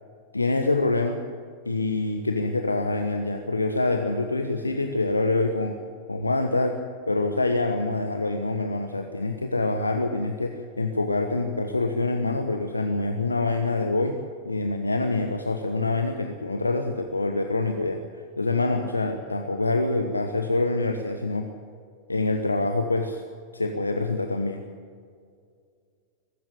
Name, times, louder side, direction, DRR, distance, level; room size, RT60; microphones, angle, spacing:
voice 1, 0.3-1.2 1.6-5.7 6.1-6.8 7.1-14.2 14.4-18.0 18.4-21.4 22.1-23.2 23.5-24.6, left 2 dB, 80° left, 6 dB, 1.2 m, -25 dB
22.5 x 13.5 x 8.6 m, 2.2 s
figure-of-eight pair, 90°, 0 cm